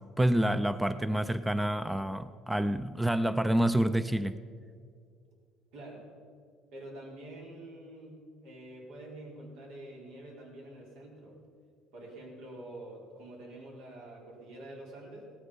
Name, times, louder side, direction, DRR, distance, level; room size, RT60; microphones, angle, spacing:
voice 1, 0.2-4.4, right 1 dB, 5° right, 13 dB, 0.4 m, -28 dB
voice 2, 5.7-6.0 6.7-11.3 11.9-15.2, right 1 dB, 80° right, -2 dB, 4.6 m, -47 dB
17.0 x 13.0 x 5.2 m, 2.2 s
cardioid pair, 130°, 0 cm